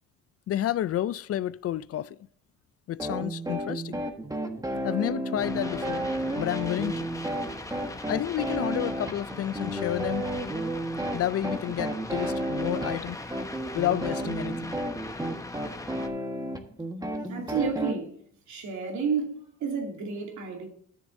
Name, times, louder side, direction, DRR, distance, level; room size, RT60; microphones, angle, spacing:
voice 1, 0.5-2.2 2.9-4.0 4.8-6.1 6.4-6.9 8.1-10.3 11.1-13.4 13.7-14.8, left 12 dB, 50° left, 0.4 m, -30 dB
sound 1, 3.0-18.0, right 1 dB, 10° right, 1.4 m, -32 dB
sound 2, 5.4-16.1, left 2 dB, 10° left, 1.1 m, -40 dB
voice 2, 17.2-18.2 18.5-20.7, right 5 dB, 70° right, 2.6 m, -31 dB
13.0 x 7.1 x 2.7 m
cardioid pair, 90°, 30 cm